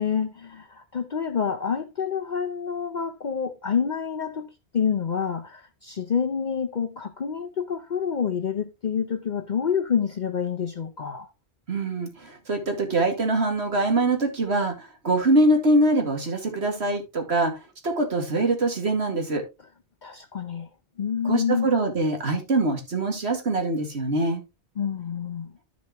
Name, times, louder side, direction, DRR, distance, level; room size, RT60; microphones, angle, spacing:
voice 1, 0.0-11.3 20.0-20.7 21.0-21.7 24.8-25.5, left 7 dB, 50° left, 0.8 m, -28 dB
voice 2, 11.7-17.6 17.8-19.4 21.2-24.4, right 2 dB, 80° right, 2.4 m, -23 dB
14.0 x 5.2 x 3.0 m
omnidirectional pair, 1.1 m